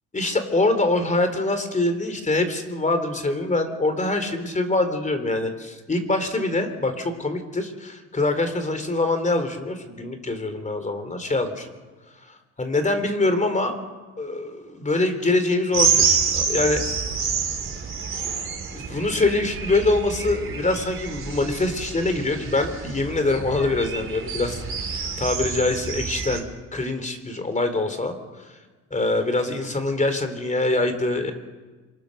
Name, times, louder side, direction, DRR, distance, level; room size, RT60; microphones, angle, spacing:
voice 1, 0.1-11.7 12.6-13.8 14.2-16.8 18.7-26.5 26.7-28.2 28.9-31.3, left 2 dB, 25° left, 8 dB, 3.8 m, -24 dB
sound 1, 15.7-26.4, right 6 dB, 45° right, 3.9 m, -27 dB
27.0 x 24.0 x 6.7 m, 1.3 s
cardioid pair, 90°, 30 cm